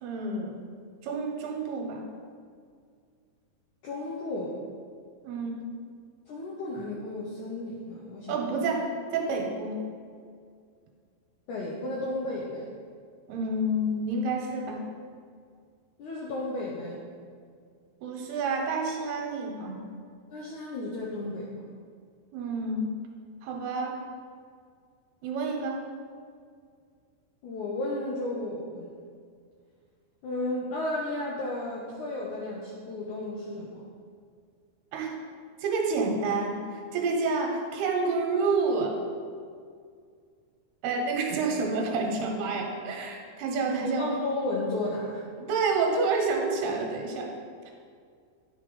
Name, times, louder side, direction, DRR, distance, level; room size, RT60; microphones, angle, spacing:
voice 1, 0.0-0.6 1.0-2.1 5.2-5.6 8.3-9.8 13.3-14.8 18.0-19.8 22.3-22.9 23.4-24.0 25.2-25.8 34.9-35.2 35.6-38.9 40.8-44.1 45.4-47.3 47.7-47.8, right 3 dB, 75° right, 1 dB, 2.9 m, -29 dB
voice 2, 3.8-4.6 6.3-8.6 11.5-12.7 16.0-17.0 20.3-21.6 27.4-28.9 30.2-33.8 43.8-45.2, left 2 dB, 75° left, -3 dB, 1.8 m, -33 dB
10.5 x 4.7 x 5.4 m, 2.1 s
omnidirectional pair, 4.8 m